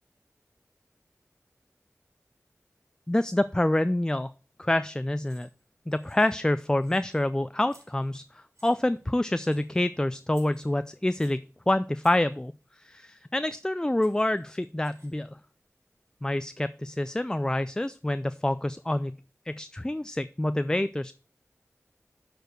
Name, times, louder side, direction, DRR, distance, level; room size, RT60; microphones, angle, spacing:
voice 1, 3.1-4.3 4.6-5.5 5.9-15.4 16.2-19.2 19.5-21.1, left 1 dB, 15° left, 13 dB, 0.3 m, -27 dB
sound 1, 5.2-5.6 5.9-6.5 6.8-7.3 7.7-8.2 8.5-9.1 9.5-9.8 10.3-11.5 12.0-12.3 13.6-13.7 14.0-15.3, equal, 65° right, 4.2 m, -59 dB
6.9 x 4.6 x 6.5 m, 0.38 s
wide cardioid pair, 45°, 5 cm